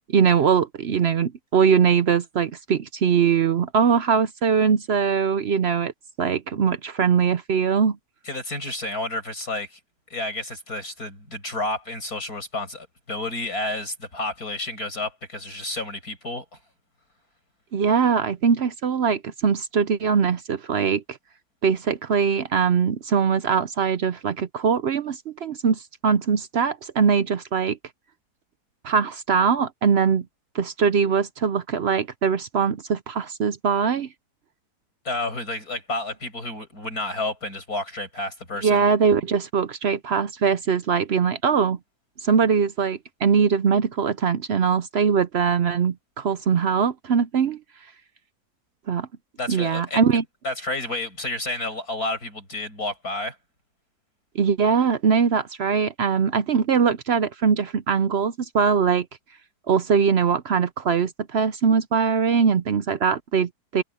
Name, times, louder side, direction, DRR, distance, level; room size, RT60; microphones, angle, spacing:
voice 1, 0.1-5.9 6.2-8.0 17.7-21.0 21.6-27.8 28.8-30.2 30.5-34.1 38.6-41.8 42.2-47.6 48.9-49.1 49.5-50.2 54.3-59.1 59.7-63.8, right 6 dB, 60° right, 0.7 m, -21 dB
voice 2, 8.3-9.8 10.1-16.5 35.1-38.8 49.4-50.0 50.4-53.4, left 2 dB, 60° left, 8.5 m, -30 dB
omnidirectional pair, 1.8 m